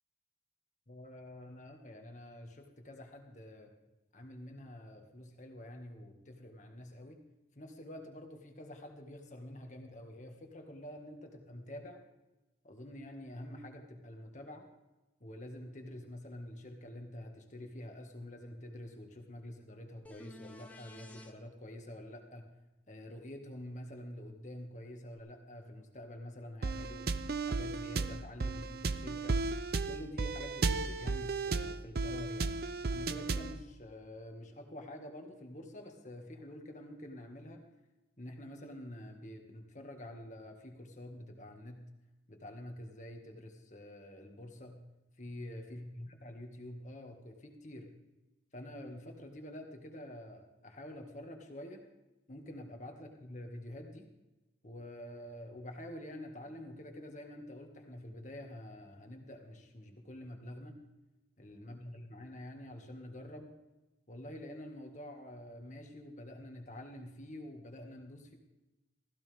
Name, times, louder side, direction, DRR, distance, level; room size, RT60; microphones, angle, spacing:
voice 1, 0.9-3.7 4.1-7.2 7.6-12.0 12.6-14.7 15.2-22.5 22.9-27.1 27.4-29.4 29.9-32.6 32.9-37.6 38.2-41.9 42.3-44.8 45.2-47.9 48.5-51.8 52.3-54.1 54.6-60.8 61.4-63.5 64.1-68.3, left 1 dB, 40° left, 3 dB, 1.9 m, -47 dB
sound 1, 20.0-21.3 25.2-25.3, left 1 dB, 10° left, 1.0 m, -52 dB
sound 2, 26.6-33.6, right 3 dB, 55° right, 0.6 m, -34 dB
16.0 x 15.0 x 3.5 m, 1.0 s
head